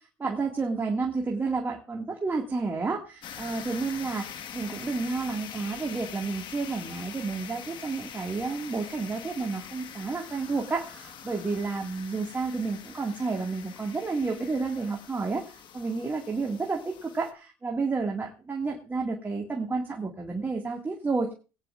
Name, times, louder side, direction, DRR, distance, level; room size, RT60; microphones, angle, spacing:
voice 1, 0.2-21.3, right 4 dB, 20° right, 0 dB, 2.1 m, -31 dB
sound 1, 3.2-17.3, left 8 dB, 55° left, 1.6 m, -44 dB
20.0 x 9.9 x 2.5 m, 0.32 s
supercardioid pair, 90°, 9 cm